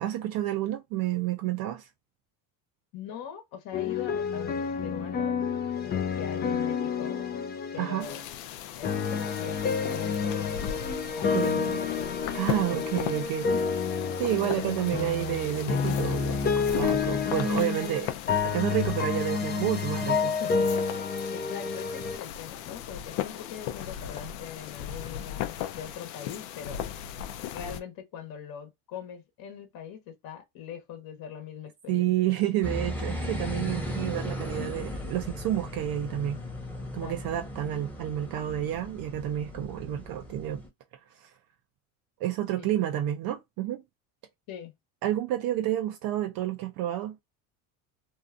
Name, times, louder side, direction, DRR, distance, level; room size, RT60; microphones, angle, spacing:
voice 1, 0.0-1.9 7.8-8.1 11.3-11.8 12.3-13.5 14.2-18.1 18.4-20.3 31.9-36.4 36.9-40.6 41.2-41.3 42.2-43.8 45.0-47.2, right 13 dB, 55° right, 0.5 m, -30 dB
voice 2, 2.9-5.4 5.8-7.3 7.7-8.2 8.8-10.6 11.2-12.2 12.5-12.9 13.5-13.6 20.4-26.9 27.5-32.1 36.8-37.1 42.6-42.7 44.5-44.7, left 9 dB, 50° left, 1.0 m, -42 dB
sound 1, 3.7-8.2 8.8-22.2, left 5 dB, 25° left, 0.4 m, -29 dB
sound 2, 8.0-27.8, left 10 dB, 70° left, 0.6 m, -38 dB
sound 3, 32.6-40.7, left 1 dB, 5° left, 0.8 m, -36 dB
2.6 x 2.4 x 2.4 m
supercardioid pair, 100°, 45 cm